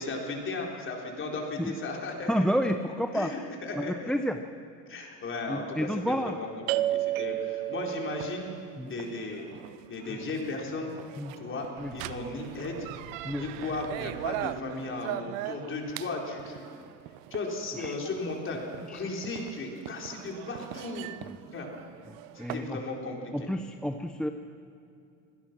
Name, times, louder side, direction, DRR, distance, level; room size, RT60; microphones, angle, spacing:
voice 1, 0.0-2.4 3.1-4.1 4.9-8.5 8.8-9.5 9.9-10.9 11.4-12.9 13.3-16.7 17.3-21.1 21.5-21.7 22.3-23.5, left 3 dB, 35° left, 0 dB, 4.3 m, -36 dB
voice 2, 2.3-3.3 3.7-4.4 5.5-6.4 8.8-8.9 10.1-10.2 11.2-11.3 11.8-11.9 13.2-13.4 16.7-16.8 17.8-18.0 18.9-19.0 21.2-21.4 22.4-22.8 23.3-24.3, equal, ahead, 6 dB, 0.7 m, -30 dB
sound 1, 6.7-22.7, right 15 dB, 90° right, 0.8 m, -37 dB
25.5 x 17.0 x 6.1 m, 2.6 s
supercardioid pair, 115°, 37 cm